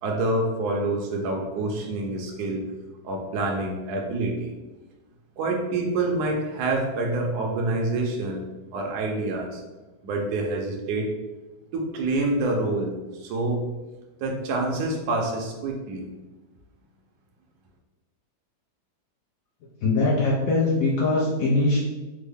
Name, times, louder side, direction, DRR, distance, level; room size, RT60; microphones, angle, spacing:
voice 1, 0.0-2.7 3.0-4.5 5.4-8.5 8.7-9.6 10.0-11.1 11.7-13.7 14.2-16.1, right 2 dB, 70° right, 0 dB, 1.0 m, -27 dB
voice 2, 19.8-21.8, left 2 dB, 70° left, -5 dB, 0.8 m, -22 dB
3.6 x 2.0 x 3.4 m, 1.2 s
omnidirectional pair, 2.0 m